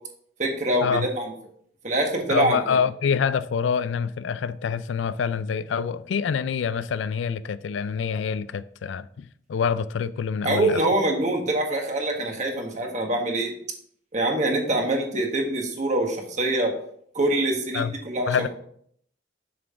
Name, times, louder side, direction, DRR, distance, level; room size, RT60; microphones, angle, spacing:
voice 1, 0.4-1.3 1.8-2.8 10.4-13.5 14.1-16.7 17.1-18.5, right 1 dB, 40° right, 1.4 m, -24 dB
voice 2, 2.3-10.8 17.7-17.9 18.3-18.5, left 6 dB, 80° left, 0.4 m, -26 dB
7.5 x 6.2 x 3.7 m
head